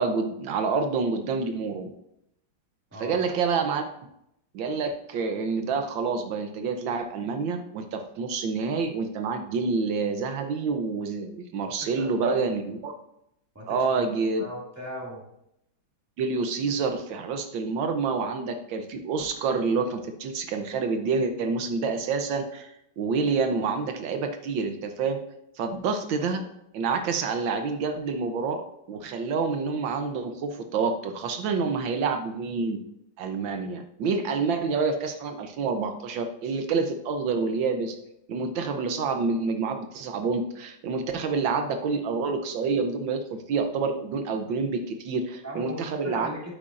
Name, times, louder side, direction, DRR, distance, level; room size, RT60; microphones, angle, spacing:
voice 1, 0.0-1.9 3.0-3.8 4.5-12.9 13.7-14.4 16.2-25.2 25.6-26.5 26.7-32.8 33.2-37.9 38.3-46.3, right 4 dB, 80° right, 6 dB, 1.6 m, -28 dB
voice 2, 11.7-12.4 13.5-14.1 14.4-15.2 45.4-46.5, equal, 10° right, -3 dB, 2.2 m, -38 dB
9.9 x 8.5 x 2.5 m, 0.78 s
omnidirectional pair, 2.1 m